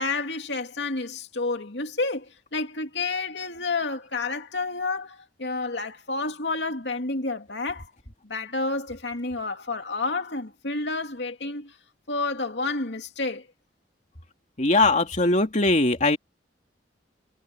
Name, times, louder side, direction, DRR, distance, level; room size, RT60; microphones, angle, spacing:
voice 1, 0.0-7.9 8.2-11.7 12.1-13.5, left 3 dB, 80° left, 2.6 m, -30 dB
voice 2, 14.6-16.2, left 2 dB, 45° left, 2.5 m, -20 dB
head